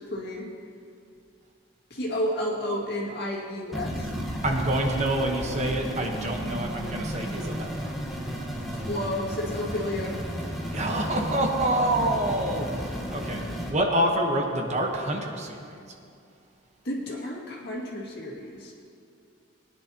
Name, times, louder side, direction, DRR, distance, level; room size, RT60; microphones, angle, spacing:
voice 1, 0.1-0.5 1.9-4.1 8.7-10.2 16.8-18.7, left 1 dB, 55° left, -3 dB, 2.1 m, -31 dB
sound 1, 3.7-13.7, equal, ahead, 1.3 m, -33 dB
voice 2, 4.4-7.9 10.7-12.7 13.1-13.4 13.7-15.7, right 1 dB, 35° right, 2 dB, 1.1 m, -26 dB
19.5 x 10.0 x 2.9 m, 2.4 s
head